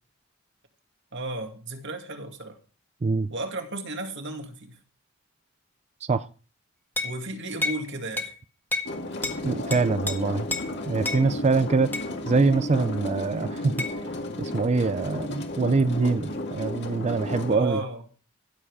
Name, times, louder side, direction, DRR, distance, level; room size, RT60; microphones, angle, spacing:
voice 1, 1.1-2.6 3.3-4.8 7.0-8.3 17.5-18.1, right 2 dB, 60° right, 2.2 m, -34 dB
sound 1, 7.0-7.2 7.6-7.8 8.2-8.3 8.7-8.9 9.2-9.4 9.7-10.2 10.5-10.7 11.0-11.2 11.9-12.1 13.8-13.9, left 3 dB, 10° left, 1.6 m, -29 dB
sound 2, 8.9-17.6, left 1 dB, 60° left, 2.3 m, -33 dB
voice 2, 9.4-10.5 10.9-11.9 12.3-13.7 14.4-17.8, right 4 dB, 35° right, 0.4 m, -24 dB
14.5 x 7.6 x 4.9 m
head